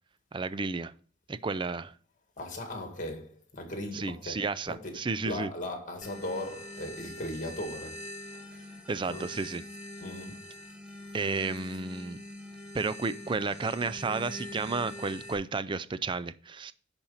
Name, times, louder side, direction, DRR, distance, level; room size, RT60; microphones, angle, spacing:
voice 1, 0.3-0.9 1.3-1.9 3.9-5.5 8.9-9.6 11.1-12.2 12.7-16.7, right 4 dB, 25° right, 0.4 m, -32 dB
voice 2, 2.4-8.8 9.0-9.3 10.0-10.5, left 1 dB, 40° left, 2.0 m, -39 dB
sound 1, 6.0-15.3, left 1 dB, 5° right, 1.0 m, -44 dB
10.5 x 4.4 x 5.6 m
head